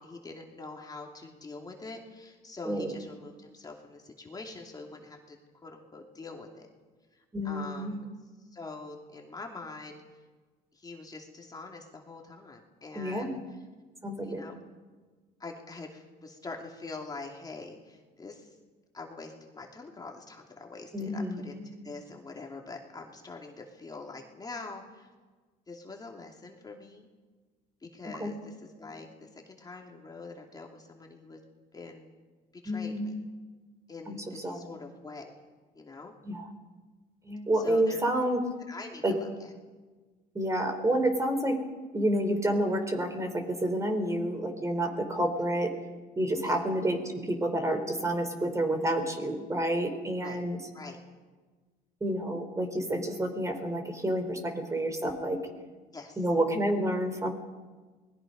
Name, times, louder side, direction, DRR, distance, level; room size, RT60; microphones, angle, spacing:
voice 1, 0.0-6.7 7.4-8.0 8.4-10.0 10.7-13.4 14.2-14.5 15.4-18.6 18.9-25.1 25.7-27.1 27.8-31.4 31.7-32.1 32.5-33.2 33.9-35.3 35.7-36.1 37.5-38.0 38.7-39.5 46.4-46.6 50.2-50.4 50.7-51.0 55.9-56.3, left 3 dB, 25° left, 1 dB, 2.8 m, -44 dB
voice 2, 7.3-8.0 12.9-13.3 14.0-14.4 20.9-21.6 28.2-28.3 32.7-33.1 34.1-34.2 34.4-34.8 36.3-36.5 37.2-38.4 39.0-39.2 40.3-41.6 41.9-45.7 46.2-50.6 52.0-55.4 56.2-57.3, right 1 dB, 20° right, 6 dB, 3.6 m, -29 dB
28.5 x 20.5 x 5.4 m, 1.3 s
cardioid pair, 110°, 17 cm